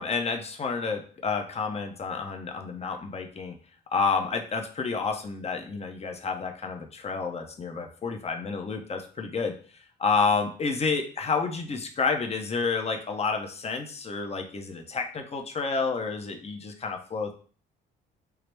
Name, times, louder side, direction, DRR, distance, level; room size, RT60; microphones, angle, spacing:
voice 1, 0.0-3.6 3.9-9.5 10.0-17.3, left 4 dB, 30° left, 4 dB, 0.7 m, -29 dB
4.6 x 2.0 x 3.3 m, 0.43 s
cardioid pair, 90°, 20 cm